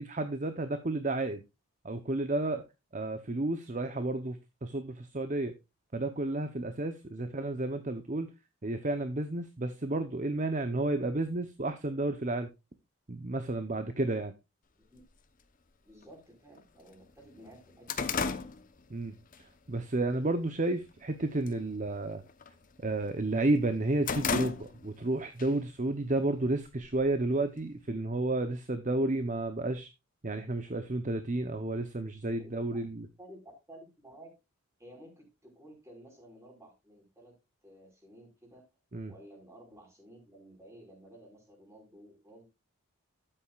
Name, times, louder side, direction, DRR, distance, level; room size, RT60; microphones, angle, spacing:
voice 1, 0.0-1.4 1.8-2.6 2.9-5.5 5.9-8.3 8.6-12.5 13.1-14.3 18.9-19.1 19.7-22.2 22.8-29.9 30.2-33.1 38.9-39.1, right 2 dB, 35° right, 9 dB, 0.8 m, -31 dB
sound 1, 15.0-15.1 16.0-16.1 16.6-16.7 17.0-19.4 19.8-20.1 20.6-21.1 21.3-21.6 21.9-23.2 23.6-25.1 25.4-25.5 26.4-27.3, left 5 dB, 35° left, 0.9 m, -34 dB
voice 2, 15.8-18.2 32.2-32.8 33.2-34.3 34.8-37.4 37.6-38.6 39.1-42.5, right 1 dB, 15° right, 1 dB, 5.0 m, -54 dB
12.5 x 8.9 x 2.4 m, 0.24 s
head